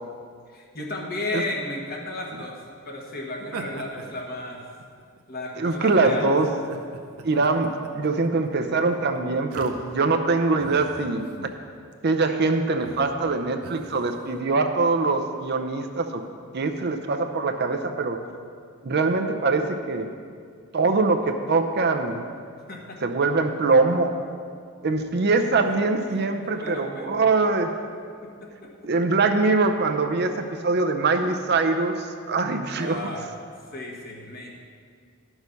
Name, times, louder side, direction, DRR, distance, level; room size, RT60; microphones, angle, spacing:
voice 1, 0.5-4.6 5.3-6.3 22.7-23.0 25.6-25.7 26.1-27.4 28.2-28.7 32.7-33.3 33.7-34.5, left 2 dB, 45° left, 0 dB, 1.4 m, -34 dB
sound 1, 3.4-5.2 5.9-6.1 6.6-10.2 10.6-11.6 11.9-12.1 12.8-13.1 13.6-14.3, right 3 dB, 85° right, 0.8 m, -41 dB
voice 2, 5.6-6.5 7.2-11.3 12.0-16.2 16.5-18.2 18.8-20.1 20.7-22.3 23.0-24.1 24.8-27.7 28.8-33.0, right 3 dB, 50° right, 6 dB, 0.6 m, -23 dB
11.0 x 6.3 x 5.3 m, 2.2 s
head